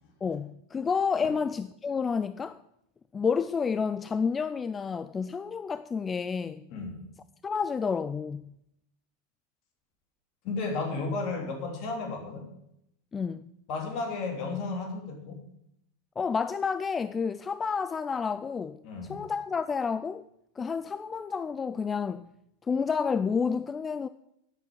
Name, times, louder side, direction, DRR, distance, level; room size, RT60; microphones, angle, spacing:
voice 1, 0.2-2.6 3.1-6.7 7.4-8.5 13.1-13.5 16.2-18.8 19.1-20.3 20.6-22.3 22.7-24.1, left 5 dB, 20° left, 0.3 m, -30 dB
voice 2, 6.7-7.1 10.4-12.5 13.7-15.4 18.8-19.2, left 3 dB, 50° left, 3.0 m, -33 dB
9.7 x 6.1 x 8.4 m
hypercardioid pair, 115°, 0 cm